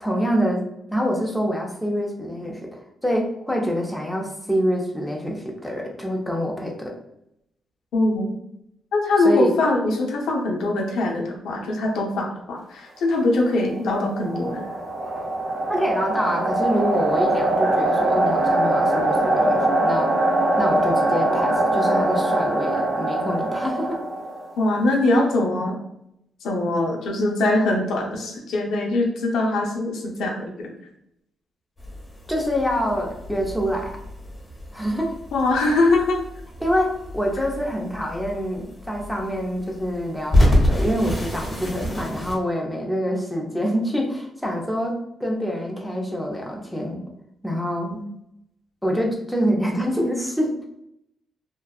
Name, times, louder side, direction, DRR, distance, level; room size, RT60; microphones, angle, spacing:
voice 1, 0.0-7.0 9.2-9.6 15.7-20.1 20.6-24.0 32.3-34.0 34.7-35.1 36.6-47.0 47.4-47.9 48.8-50.6, equal, ahead, -1 dB, 0.5 m, -26 dB
voice 2, 7.9-8.4 8.9-14.7 24.6-25.8 26.4-30.7 35.3-36.2 47.9-48.0, left 2 dB, 85° left, 0 dB, 0.6 m, -22 dB
sound 1, 13.7-24.6, right 1 dB, 60° right, 0.5 m, -22 dB
sound 2, 31.8-42.4, left 1 dB, 20° left, 0.8 m, -27 dB
2.5 x 2.2 x 2.3 m, 0.79 s
cardioid pair, 120°, 0 cm